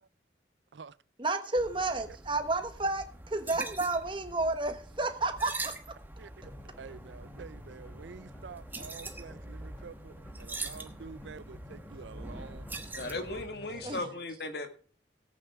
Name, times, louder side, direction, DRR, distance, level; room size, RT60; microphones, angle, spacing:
voice 1, 1.2-5.9 12.7-12.8 13.8-14.0, right 2 dB, 25° right, 1.2 m, -31 dB
sound 1, 1.5-13.5, right 2 dB, 10° right, 1.1 m, -44 dB
sound 2, 6.4-14.1, left 1 dB, 10° left, 3.1 m, -51 dB
voice 2, 6.8-12.6 12.9-13.4, right 5 dB, 80° right, 0.5 m, -48 dB
voice 3, 13.0-14.7, left 2 dB, 60° left, 1.8 m, -36 dB
17.5 x 8.8 x 3.5 m
head